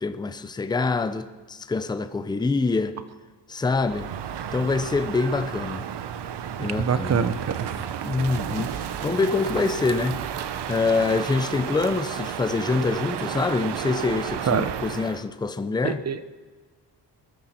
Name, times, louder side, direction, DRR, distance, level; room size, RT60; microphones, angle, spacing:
voice 1, 0.0-3.0 3.5-4.1 4.5-5.9 6.6-7.2 8.0-10.2 10.7-16.0, left 3 dB, 10° left, 0.5 m, -25 dB
Crow, 3.8-15.2, right 9 dB, 75° right, 1.0 m, -32 dB
voice 2, 6.8-7.7 14.5-14.7 15.8-16.3, right 6 dB, 40° right, 0.7 m, -24 dB
20.0 x 13.5 x 4.4 m
wide cardioid pair, 175°, 42 cm